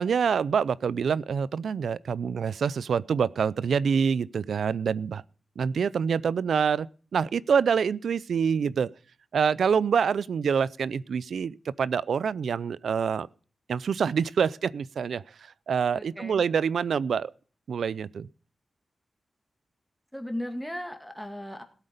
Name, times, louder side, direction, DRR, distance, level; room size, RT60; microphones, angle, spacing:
voice 1, 0.0-5.2 5.6-8.9 9.3-13.3 13.7-15.2 15.7-17.3 17.7-18.3, right 6 dB, 85° right, 0.5 m, -26 dB
voice 2, 15.9-16.4 20.1-21.6, left 1 dB, ahead, 1.9 m, -36 dB
17.0 x 8.2 x 5.1 m
wide cardioid pair, 165°, 0 cm